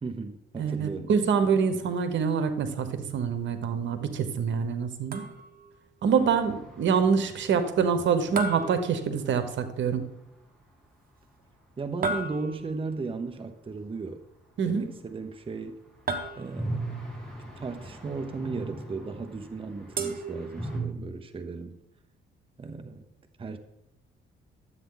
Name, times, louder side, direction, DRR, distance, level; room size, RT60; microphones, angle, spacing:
voice 1, 0.0-1.2 11.8-14.2 14.6-15.8 16.4-16.9 17.6-21.8 22.6-23.0 23.4-23.6, right 4 dB, 25° right, 7 dB, 0.8 m, -36 dB
voice 2, 0.6-5.3 6.0-10.0 14.6-14.9, right 6 dB, 70° right, 9 dB, 1.2 m, -26 dB
sound 1, 5.1-5.7 8.4-9.6 12.0-12.9 16.1-16.9 20.0-21.0, right 3 dB, 45° right, 1.3 m, -34 dB
sound 2, 6.2-10.0 10.2-10.3 10.5-10.6 15.6-20.8, right 1 dB, 5° left, 3.4 m, -40 dB
12.0 x 8.3 x 3.9 m, 0.83 s
cardioid pair, 90°, 20 cm